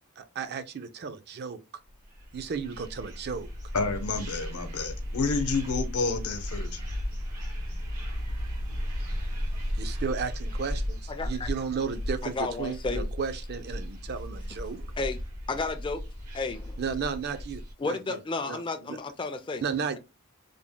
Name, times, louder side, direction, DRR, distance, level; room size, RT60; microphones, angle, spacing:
voice 1, 0.2-1.6 2.3-3.5 9.8-14.9 16.8-18.2 18.5-18.6 18.9-19.0 19.6-20.0, right 6 dB, 45° right, 0.4 m, -34 dB
sound 1, 2.0-17.7, equal, 90° right, 1.4 m, -35 dB
voice 2, 3.7-6.8, left 4 dB, 80° left, 0.8 m, -29 dB
voice 3, 11.1-11.5 12.2-13.1 14.5-14.6 15.0-15.2 15.5-16.0 16.3-16.8 17.8-19.6, left 3 dB, 20° left, 0.4 m, -32 dB
3.4 x 2.1 x 3.7 m
head